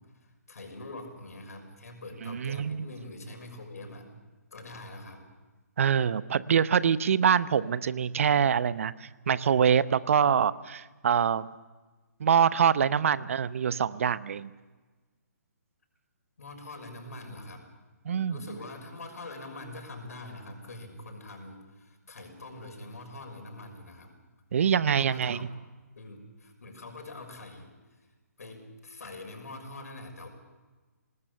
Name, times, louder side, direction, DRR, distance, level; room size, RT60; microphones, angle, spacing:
voice 1, 0.1-4.1 4.5-5.2 16.4-17.6 18.3-24.1 25.0-25.5 25.9-27.7 28.0-28.1 28.4-30.3, left 2 dB, 65° left, 4 dB, 6.0 m, -44 dB
voice 2, 2.2-2.8 5.8-11.5 12.2-14.5 18.0-18.4 24.5-25.5, right 7 dB, 55° right, 17 dB, 0.8 m, -25 dB
25.0 x 19.5 x 6.9 m, 1.3 s
figure-of-eight pair, 140°, 9 cm